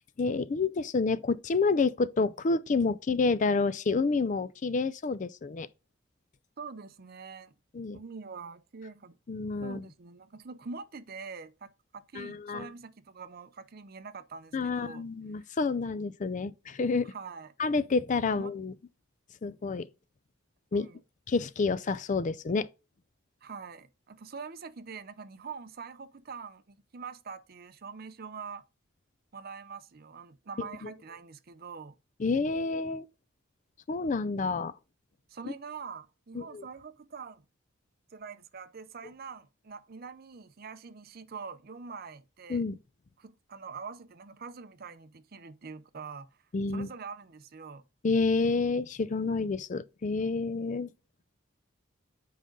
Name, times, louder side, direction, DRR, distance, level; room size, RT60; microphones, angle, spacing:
voice 1, 0.2-5.7 7.7-8.0 9.3-9.8 12.2-12.7 14.5-17.1 17.6-18.7 19.4-19.9 20.7-20.9 21.3-22.7 30.8-30.9 32.2-33.0 33.9-34.7 36.3-36.6 42.5-42.8 46.5-46.9 48.0-50.9, left 4 dB, 40° left, 0.4 m, -29 dB
voice 2, 6.6-7.5 7.9-9.2 9.6-15.0 15.4-15.6 17.0-17.5 18.2-18.5 20.7-21.0 23.4-28.6 29.3-32.0 35.3-37.4 38.1-42.6 43.2-46.4 46.7-47.9, right 5 dB, 50° right, 0.6 m, -44 dB
7.7 x 5.0 x 3.8 m
head